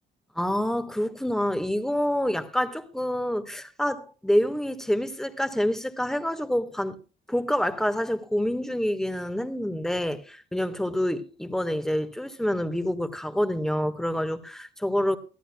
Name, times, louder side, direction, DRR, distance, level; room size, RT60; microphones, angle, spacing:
voice 1, 0.3-7.0 7.3-15.2, equal, ahead, 1.5 m, -27 dB
23.5 x 13.5 x 2.3 m
cardioid pair, 90°, 20 cm